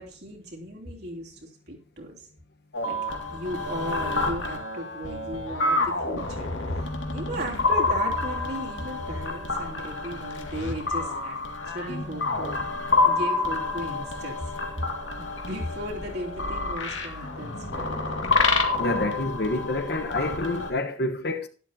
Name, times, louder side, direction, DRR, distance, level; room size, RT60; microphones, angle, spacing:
voice 1, 0.0-2.3 2.8-3.0 3.3-11.4 11.7-12.6 13.0-14.4 15.2-18.0, equal, 55° right, 3.2 m, -36 dB
sound 1, 2.7-20.7, left 3 dB, 80° left, 2.0 m, -28 dB
voice 2, 18.8-21.5, left 2 dB, 55° left, 1.2 m, -28 dB
12.0 x 11.5 x 2.9 m
head